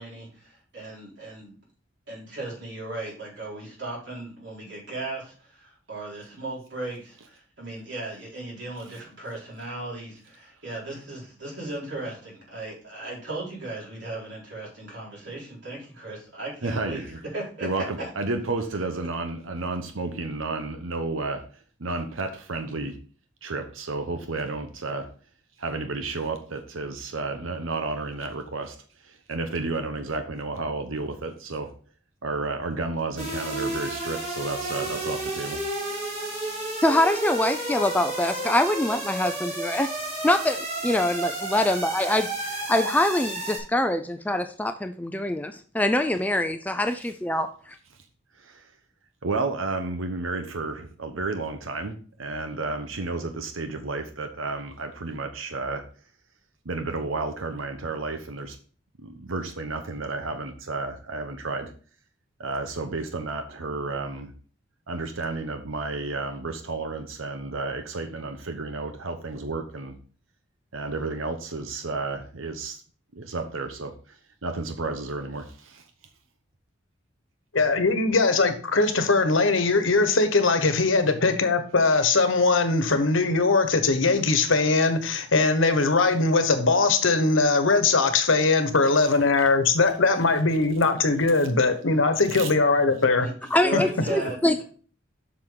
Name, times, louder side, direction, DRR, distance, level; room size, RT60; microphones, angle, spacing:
voice 1, 0.0-1.5 2.1-18.1 93.0-94.6, right 2 dB, 60° right, -5 dB, 4.7 m, -36 dB
voice 2, 16.6-17.2 17.6-21.4 21.8-23.0 23.4-25.1 25.6-28.8 29.0-31.7 32.2-36.5 39.2-39.3 48.4-48.7 49.2-55.8 56.6-58.6 59.0-61.7 62.4-64.3 64.9-69.9 70.7-72.8 73.1-74.2 74.4-75.8 92.3-92.5, right 3 dB, 90° right, 7 dB, 1.0 m, -32 dB
sound 1, 33.2-43.6, right 1 dB, 35° right, 4.3 m, -32 dB
voice 3, 36.8-39.9 40.2-47.5 93.5-94.6, left 1 dB, 10° left, 8 dB, 0.4 m, -24 dB
voice 4, 77.5-93.3 93.7-93.8, left 3 dB, 80° left, 8 dB, 1.2 m, -21 dB
7.7 x 6.1 x 3.8 m, 0.40 s
head